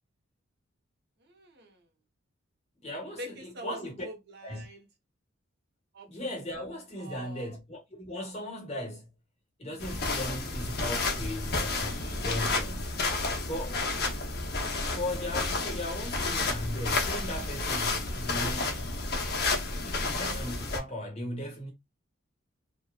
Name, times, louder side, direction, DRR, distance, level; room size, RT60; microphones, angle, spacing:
voice 1, 1.2-1.8 2.9-4.9 5.9-6.1 7.0-7.6, right 1 dB, 55° right, 0.7 m, -44 dB
voice 2, 2.8-4.0 4.4-4.7 6.1-9.1 9.6-12.9 13.4-13.9 14.9-18.9 19.8-21.7, left 1 dB, 30° left, 1.0 m, -37 dB
sound 1, 9.8-20.8, left 3 dB, 50° left, 0.7 m, -31 dB
2.8 x 2.1 x 2.2 m
head